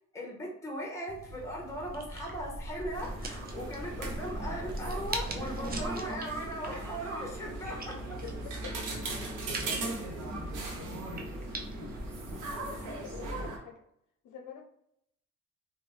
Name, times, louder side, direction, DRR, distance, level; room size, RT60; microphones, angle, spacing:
voice 1, 0.1-8.2 10.3-10.4, equal, 10° left, -2 dB, 0.9 m, -38 dB
sound 1, 1.1-13.2, right 2 dB, 30° right, 0.5 m, -42 dB
sound 2, 2.9-13.6, right 2 dB, 90° right, 0.7 m, -39 dB
voice 2, 10.1-10.5 12.6-13.8 14.2-14.6, left 8 dB, 70° left, 2 dB, 0.5 m, -47 dB
2.6 x 2.2 x 3.0 m, 0.73 s
cardioid pair, 75°, 31 cm